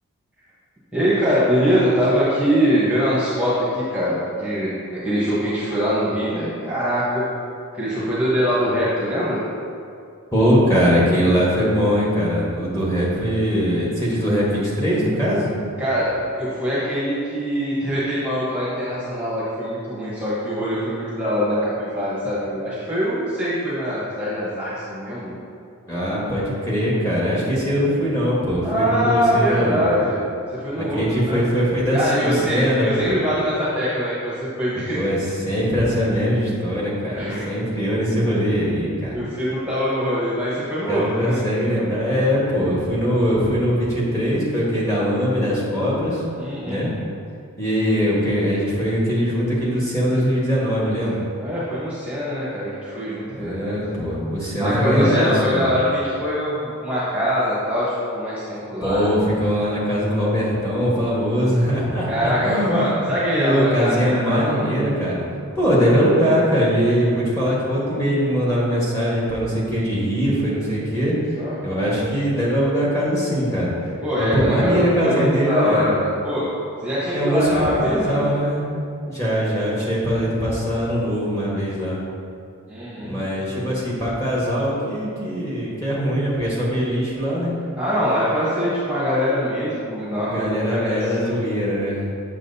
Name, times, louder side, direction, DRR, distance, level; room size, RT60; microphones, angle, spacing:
voice 1, 0.9-7.3 7.7-9.4 15.8-25.3 28.6-30.2 30.5-31.4 31.9-35.1 37.1-37.5 39.1-41.4 46.4-46.9 51.4-53.8 54.6-59.1 62.1-64.6 71.4-71.5 74.0-76.5 76.8-78.3 82.7-83.2 87.8-91.4, equal, 5° right, -9 dB, 1.0 m, -23 dB
voice 2, 10.3-15.5 25.9-29.8 30.9-32.9 34.9-35.2 35.4-39.2 40.9-46.2 46.6-46.9 47.6-51.2 53.3-55.7 58.8-62.8 63.3-65.2 65.5-71.1 71.6-73.7 74.2-75.9 77.1-78.7 79.0-82.0 83.0-87.5 90.2-92.0, equal, 15° left, -6 dB, 1.3 m, -21 dB
7.3 x 6.3 x 2.7 m, 2.4 s
head